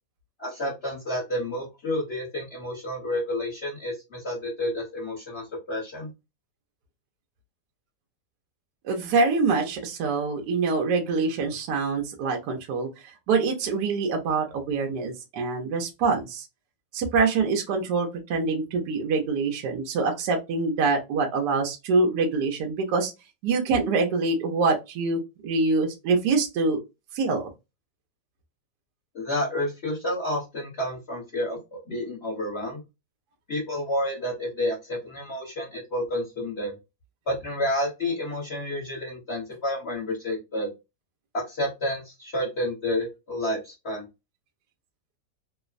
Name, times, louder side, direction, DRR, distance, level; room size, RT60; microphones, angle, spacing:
voice 1, 0.4-6.1 29.1-32.8 33.5-36.7 37.3-40.7 41.3-44.0, left 1 dB, 40° left, -6 dB, 1.1 m, -30 dB
voice 2, 8.8-16.5 16.9-23.1 23.4-26.8 27.1-27.5, right 4 dB, 75° right, 3 dB, 1.1 m, -25 dB
3.0 x 2.0 x 2.4 m, 0.24 s
omnidirectional pair, 1.9 m